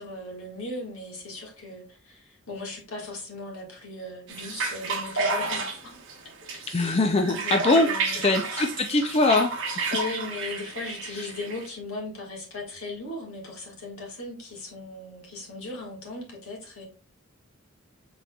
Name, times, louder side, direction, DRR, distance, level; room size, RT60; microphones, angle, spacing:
voice 1, 0.0-6.0 6.4-6.6 7.2-8.2 8.5-8.7 9.9-16.8, left 2 dB, 80° left, -1 dB, 1.8 m, -37 dB
sound 1, 4.3-11.7, right 3 dB, 60° right, 1.1 m, -31 dB
voice 2, 6.7-9.9 11.1-11.3, left 2 dB, 30° left, 5 dB, 0.4 m, -23 dB
5.7 x 3.8 x 2.3 m, 0.35 s
head